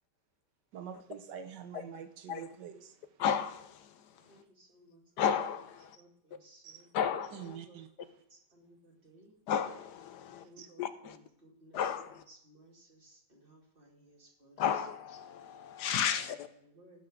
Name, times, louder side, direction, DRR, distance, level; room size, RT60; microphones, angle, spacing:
voice 1, 0.7-3.2 4.2-4.4 6.6-6.9 7.3-8.2 10.6-10.7, right 8 dB, 75° right, 1.3 m, -46 dB
voice 2, 3.2-3.9 5.2-6.0 6.9-7.5 9.5-10.4 10.8-11.2 11.7-12.2 14.6-16.5, left 8 dB, 75° left, 1.2 m, -33 dB
voice 3, 4.2-5.0 5.9-6.9 7.4-8.0 8.3-9.3 10.2-14.9 16.1-17.1, right 1 dB, 30° right, 2.5 m, -60 dB
16.5 x 5.7 x 5.0 m
omnidirectional pair, 1.9 m